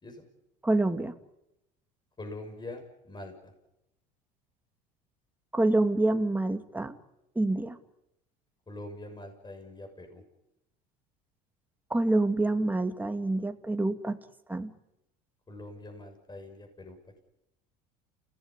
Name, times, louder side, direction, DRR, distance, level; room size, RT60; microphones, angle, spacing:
voice 1, 0.6-1.1 5.5-7.0 7.4-7.8 11.9-14.2 14.5-14.7, right 2 dB, 10° right, 7 dB, 2.3 m, -27 dB
voice 2, 2.2-3.5 8.7-10.2 15.5-17.0, left 2 dB, 20° left, 4 dB, 6.7 m, -44 dB
28.5 x 17.5 x 9.8 m, 0.88 s
supercardioid pair, 85°, 20 cm